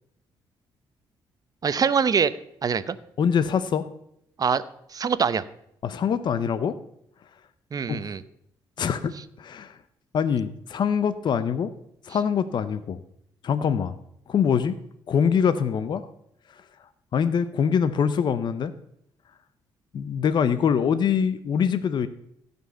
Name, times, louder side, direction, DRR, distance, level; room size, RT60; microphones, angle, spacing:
voice 1, 1.6-2.3 2.6-3.0 4.4-4.6 4.9-5.4 7.7-8.2, right 6 dB, 45° right, 14 dB, 0.8 m, -23 dB
voice 2, 3.2-3.9 5.8-6.8 7.9-8.1 8.8-9.8 10.1-11.7 12.0-13.0 13.4-13.9 14.3-14.8 15.1-16.1 17.1-18.7 19.9-22.1, left 7 dB, 55° left, 12 dB, 0.7 m, -24 dB
16.0 x 5.4 x 6.6 m, 0.74 s
cardioid pair, 75°, 9 cm